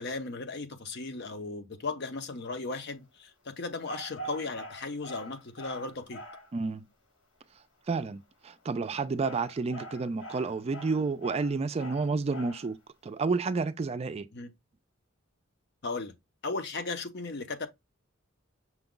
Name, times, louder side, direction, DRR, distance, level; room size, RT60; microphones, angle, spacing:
voice 1, 0.0-6.2 14.3-14.5 15.8-16.1 16.4-17.7, left 3 dB, 55° left, 0.8 m, -36 dB
sound 1, 3.8-6.5 8.6-12.7, right 1 dB, 80° left, 2.0 m, -44 dB
voice 2, 6.5-6.8 7.9-12.8 13.0-14.3, right 4 dB, 30° right, 0.4 m, -30 dB
5.9 x 2.3 x 3.7 m
head